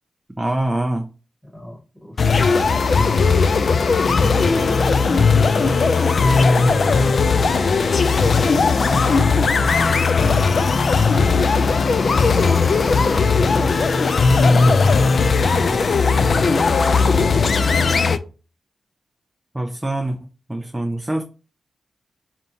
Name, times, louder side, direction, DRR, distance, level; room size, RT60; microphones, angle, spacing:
voice 1, 0.4-1.1 19.5-20.2 20.5-21.2, right 1 dB, 15° right, 0.4 m, -24 dB
voice 2, 1.4-3.0 4.0-6.3 6.6-10.6 11.0-14.9 15.5-17.2 17.4-17.9, left 1 dB, 10° left, 1.4 m, -35 dB
sound 1, 2.2-18.2, left 4 dB, 60° left, 0.3 m, -17 dB
3.4 x 2.8 x 3.9 m
cardioid pair, 80°, 0 cm